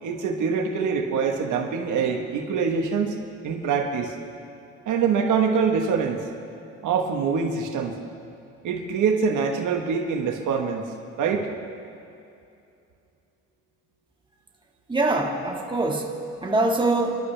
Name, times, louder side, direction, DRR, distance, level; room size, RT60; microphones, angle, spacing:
voice 1, 0.0-3.2 3.4-4.1 4.9-6.3 6.8-7.9 8.6-10.9 11.2-11.5, right 6 dB, 80° right, 3 dB, 1.4 m, -24 dB
voice 2, 14.9-17.2, right 2 dB, 15° right, 0 dB, 1.8 m, -24 dB
28.5 x 12.0 x 3.4 m, 2.6 s
cardioid pair, 90°, 30 cm